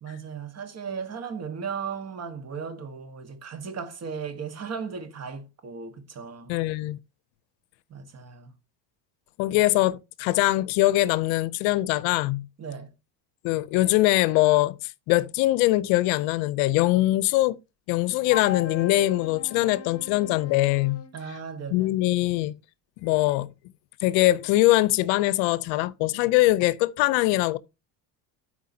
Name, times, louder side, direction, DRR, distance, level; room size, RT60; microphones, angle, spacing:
voice 1, 0.0-6.5 7.9-8.5 12.6-12.9 21.1-21.9, right 6 dB, 35° right, 1.4 m, -36 dB
voice 2, 6.5-7.0 9.4-12.5 13.4-14.8 15.1-17.6 17.9-21.0 21.7-22.5 23.0-23.5 24.0-27.6, left 17 dB, 75° left, 0.7 m, -22 dB
Wind instrument woodwind instrument, 18.3-21.1, left 7 dB, 30° left, 1.1 m, -37 dB
12.5 x 4.6 x 2.8 m
cardioid pair, 120°, 47 cm